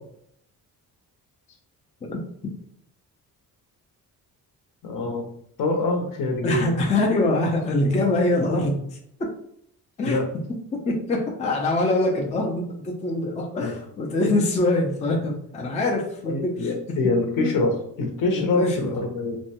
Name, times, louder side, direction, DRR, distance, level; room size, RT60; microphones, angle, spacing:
voice 1, 4.8-5.3 5.6-6.9 10.0-10.3 13.6-13.7 16.2-19.4, left 2 dB, 65° left, 2 dB, 0.7 m, -25 dB
voice 2, 6.4-8.9 9.2-9.3 10.0-10.2 10.7-16.7 17.4-17.5 18.3-19.0, left 2 dB, 20° left, 1 dB, 0.3 m, -24 dB
2.5 x 2.1 x 2.7 m, 0.70 s
cardioid pair, 135°, 36 cm